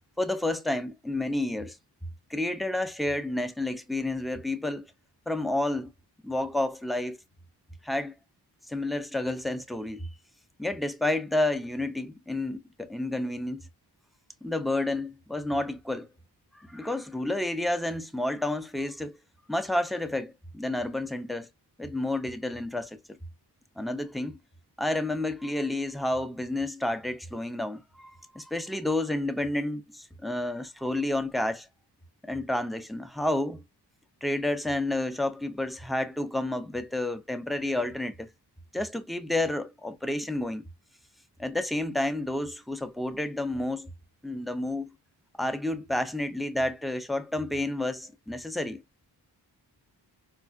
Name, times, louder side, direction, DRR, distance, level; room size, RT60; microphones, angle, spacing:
voice 1, 0.2-1.8 2.3-4.9 5.3-5.9 6.2-7.2 7.8-8.1 8.7-10.1 10.6-13.6 14.4-16.1 16.5-19.2 19.5-21.5 21.8-23.2 23.8-24.4 24.8-31.7 32.2-33.6 34.2-38.3 38.7-40.6 41.4-43.9 44.2-44.9 45.4-48.8, left 1 dB, ahead, 0.3 m, -30 dB
4.5 x 2.1 x 2.3 m
wide cardioid pair, 90°, 41 cm